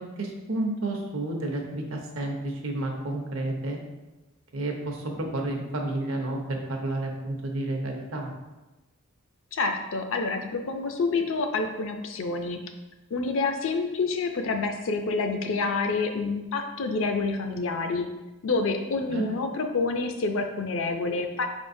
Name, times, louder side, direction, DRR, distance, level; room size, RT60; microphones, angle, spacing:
voice 1, 0.0-3.8 4.5-8.3 19.1-19.3, right 2 dB, 70° right, 2 dB, 0.7 m, -31 dB
voice 2, 9.5-12.6 13.1-18.1 18.4-21.5, left 3 dB, 60° left, 6 dB, 0.4 m, -28 dB
4.8 x 3.5 x 2.6 m, 1.1 s
head